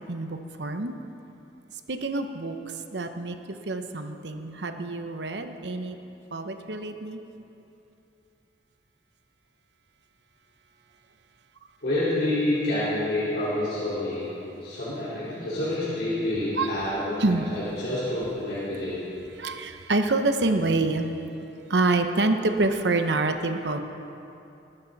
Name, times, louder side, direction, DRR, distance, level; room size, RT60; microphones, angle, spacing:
voice 1, 0.1-0.9 1.9-2.6 2.9-3.4 3.7-6.0 6.3-7.2 16.6-16.7 17.2-17.5 19.4-21.1 21.7-23.8, right 2 dB, 75° right, 7 dB, 0.9 m, -26 dB
voice 2, 11.8-14.2 14.6-19.0, left 1 dB, 65° left, -11 dB, 4.3 m, -28 dB
21.0 x 12.5 x 4.1 m, 2.8 s
head